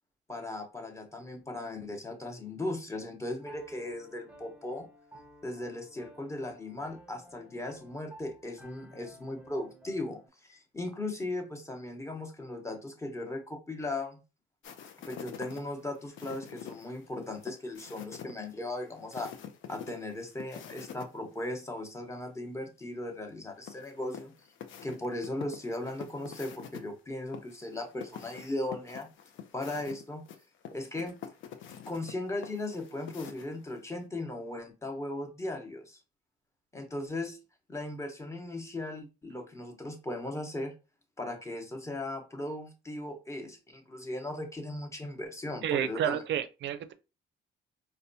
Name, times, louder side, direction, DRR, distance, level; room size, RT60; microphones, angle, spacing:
voice 1, 0.3-4.9 5.4-14.2 15.1-19.3 19.7-24.3 24.8-29.1 29.5-30.2 30.7-31.1 31.9-36.0 36.7-37.4 37.7-40.7 41.2-46.2, left 2 dB, 15° left, 0.9 m, -37 dB
Piano, 3.4-10.3, right 1 dB, 5° right, 0.6 m, -54 dB
sound 1, 14.6-21.1 21.4-21.5 23.7-26.8 27.3-33.8, left 8 dB, 75° left, 0.6 m, -46 dB
voice 2, 45.6-46.9, right 10 dB, 65° right, 0.4 m, -30 dB
4.1 x 2.2 x 2.6 m
cardioid pair, 90°, 20 cm